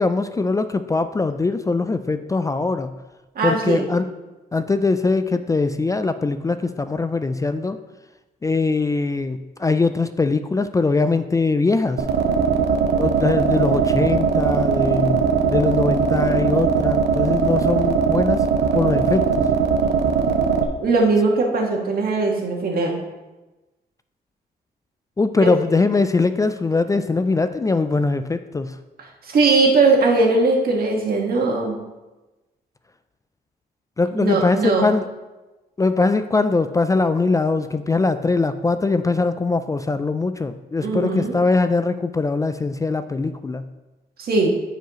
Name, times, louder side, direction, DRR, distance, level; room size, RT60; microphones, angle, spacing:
voice 1, 0.0-2.9 3.4-4.1 4.5-7.8 8.4-12.1 13.0-18.5 18.7-19.5 25.2-28.8 34.0-35.1 35.8-43.6, left 3 dB, 20° left, 10 dB, 0.3 m, -21 dB
voice 2, 3.3-3.9 20.8-23.0 25.4-25.5 29.2-31.8 34.2-34.9 40.8-41.4 44.2-44.5, right 3 dB, 65° right, 0 dB, 1.7 m, -19 dB
sound 1, 12.0-20.6, right 6 dB, 90° right, 0.8 m, -20 dB
14.0 x 4.8 x 3.0 m, 1.1 s
cardioid pair, 95°, 17 cm